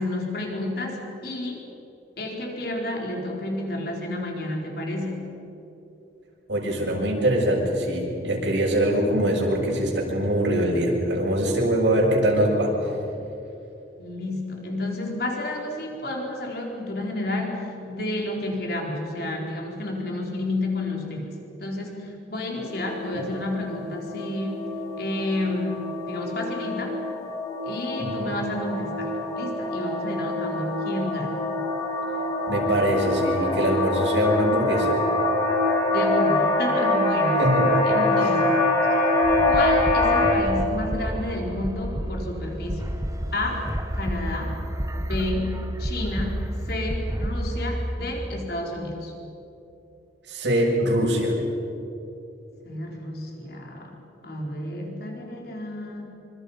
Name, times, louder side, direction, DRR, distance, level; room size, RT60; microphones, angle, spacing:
voice 1, 0.0-1.6 2.2-5.3 14.0-21.3 21.6-24.6 25.0-27.0 27.7-31.4 35.9-37.4 37.8-38.5 39.5-42.8 43.3-43.6 44.0-44.5 45.0-49.1 52.6-53.9 54.2-56.0, left 1 dB, 60° left, 0 dB, 4.1 m, -30 dB
voice 2, 6.5-12.9 23.1-23.2 28.0-28.2 32.5-34.9 37.4-37.9 38.2-38.3 50.3-51.4, right 1 dB, 85° right, -3 dB, 7.1 m, -23 dB
sound 1, 22.6-40.4, left 2 dB, 20° left, 3.5 m, -25 dB
sound 2, 39.2-47.9, equal, 20° right, 1.2 m, -30 dB
27.0 x 25.5 x 5.6 m, 2.8 s
head